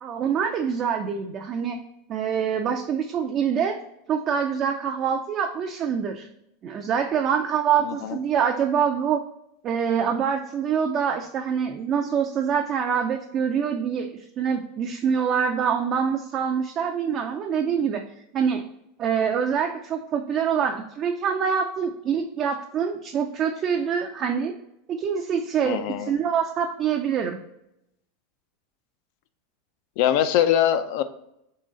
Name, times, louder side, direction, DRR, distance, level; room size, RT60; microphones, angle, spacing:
voice 1, 0.0-1.8 2.1-3.8 4.1-6.3 6.6-9.2 9.6-18.0 18.3-18.6 19.0-24.5 24.9-27.4, right 7 dB, 30° right, 3 dB, 0.4 m, -25 dB
voice 2, 7.9-8.2 25.7-26.1 30.0-31.0, left 10 dB, 55° left, 11 dB, 0.4 m, -22 dB
3.8 x 3.1 x 3.8 m, 0.80 s
supercardioid pair, 155°, 0 cm